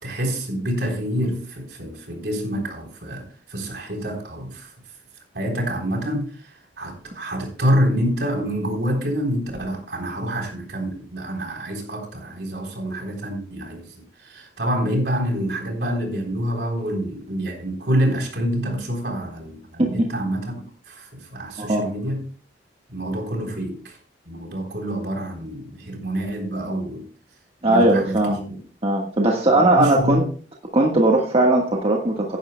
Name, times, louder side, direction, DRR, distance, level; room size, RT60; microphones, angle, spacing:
voice 1, 0.0-3.2 3.5-4.7 5.3-20.4 20.9-22.3 22.9-24.0 24.3-27.0 27.6-28.6 29.8-30.3, equal, 65° right, 3.7 m, -27 dB
voice 2, 27.6-28.4 28.8-30.2 30.7-32.4, right 1 dB, 35° right, 1.4 m, -18 dB
15.5 x 11.0 x 2.2 m
head